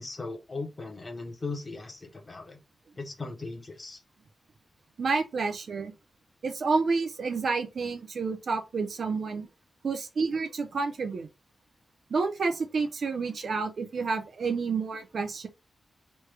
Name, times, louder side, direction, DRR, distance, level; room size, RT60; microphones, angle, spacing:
voice 1, 0.0-2.6 3.0-4.0, left 3 dB, 25° left, 0.7 m, -38 dB
voice 2, 5.0-5.9 6.4-9.5 9.8-11.3 12.1-15.5, right 4 dB, 55° right, 0.6 m, -29 dB
3.1 x 2.2 x 3.3 m
wide cardioid pair, 175°, 0 cm